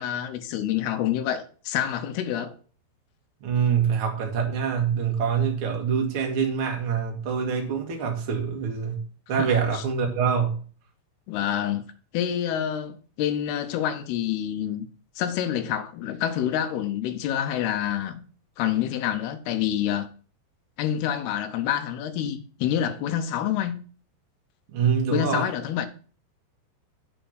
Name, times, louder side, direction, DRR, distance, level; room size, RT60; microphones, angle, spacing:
voice 1, 0.0-2.5 9.4-9.8 11.3-11.8 12.1-14.9 15.2-18.2 18.6-20.1 20.8-23.8 25.1-25.9, left 10 dB, 80° left, 2.6 m, -27 dB
voice 2, 3.4-9.0 9.3-10.6 24.7-25.5, right 7 dB, 55° right, 1.5 m, -25 dB
7.9 x 4.4 x 6.4 m
omnidirectional pair, 4.9 m